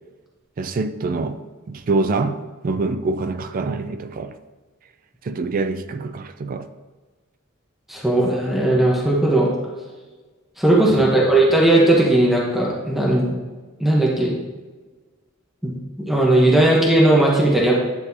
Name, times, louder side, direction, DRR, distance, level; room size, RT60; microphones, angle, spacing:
voice 1, 0.6-1.4 1.7-4.3 5.2-6.7 10.9-11.2, right 3 dB, 40° right, 0.3 m, -25 dB
voice 2, 7.9-9.5 10.6-13.4 13.8-14.4 15.6-17.7, right 1 dB, ahead, 0.9 m, -17 dB
9.4 x 4.1 x 2.7 m
head